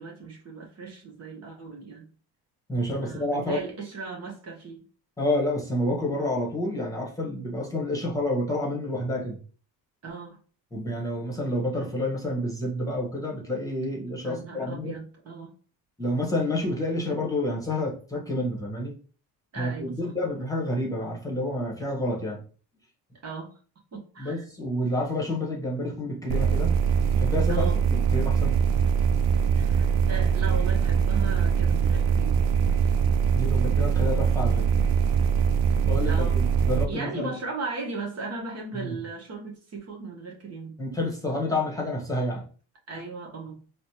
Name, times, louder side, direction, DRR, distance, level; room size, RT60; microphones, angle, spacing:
voice 1, 0.0-2.1 3.0-4.8 10.0-10.4 14.2-15.5 19.5-20.1 23.2-23.5 23.9-24.4 27.5-27.8 29.6-32.4 36.0-36.4 36.9-40.8 42.9-43.6, right 4 dB, 40° right, 1.0 m, -37 dB
voice 2, 2.7-3.6 5.2-9.4 10.7-14.9 16.0-18.9 19.6-22.4 24.2-26.8 27.1-27.6 27.9-28.5 33.3-34.7 35.8-37.4 38.7-38.9 40.8-42.4, left 1 dB, 10° left, 1.2 m, -29 dB
sound 1, 26.3-36.9, right 7 dB, 60° right, 0.5 m, -22 dB
4.1 x 2.2 x 2.9 m
supercardioid pair, 90°, 40 cm